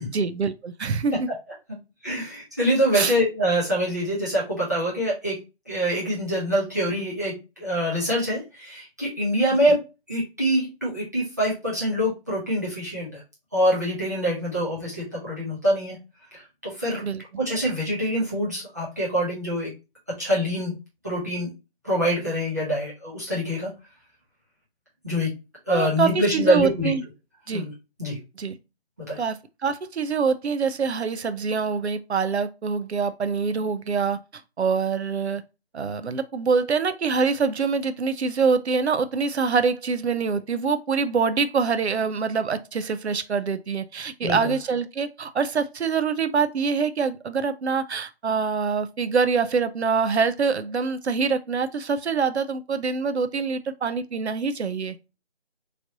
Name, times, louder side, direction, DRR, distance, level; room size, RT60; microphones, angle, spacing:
voice 1, 0.1-1.3 2.9-3.1 9.7-9.8 17.0-17.2 25.7-27.0 27.5-27.7 28.4-28.6 29.2-34.2 34.6-35.4 35.7-55.0, right 5 dB, 90° right, 0.5 m, -25 dB
voice 2, 2.0-5.3 5.7-9.8 10.1-13.2 13.5-16.0 16.6-17.0 17.4-19.7 20.2-20.7 21.0-21.5 21.8-23.7 25.0-25.3 25.7-26.9 27.5-27.7 28.0-28.2 29.1-29.2 44.2-44.5, equal, 15° right, 0.7 m, -25 dB
3.1 x 2.6 x 2.7 m
figure-of-eight pair, 165°, 32 cm